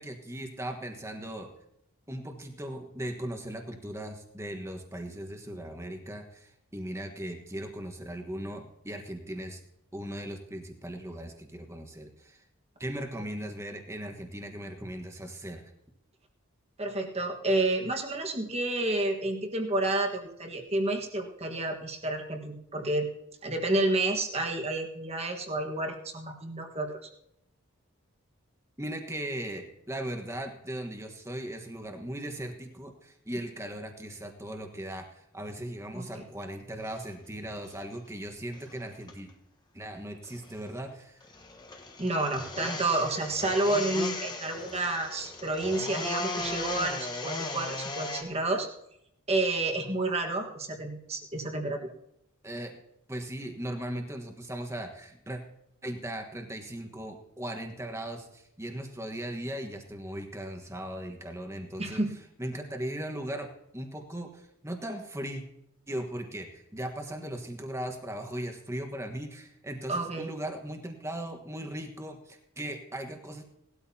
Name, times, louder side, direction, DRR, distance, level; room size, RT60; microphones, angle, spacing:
voice 1, 0.0-1.5 2.1-9.6 9.9-12.4 12.8-15.7 28.8-39.3 39.7-41.3 44.6-44.7 52.4-52.7 53.1-55.4 55.8-62.0 62.4-63.5 63.7-65.4 65.9-73.4, right 1 dB, 15° right, 4 dB, 1.3 m, -38 dB
voice 2, 16.8-23.1 23.4-27.1 35.9-36.2 42.0-48.7 49.3-51.9 61.8-62.1 69.9-70.3, right 2 dB, 30° right, 3 dB, 1.5 m, -30 dB
sound 1, 36.8-37.0 37.6-37.8 38.5-39.3 40.1-40.7 41.2-48.2, left 2 dB, 20° left, 1.3 m, -37 dB
18.5 x 13.0 x 2.8 m, 0.78 s
head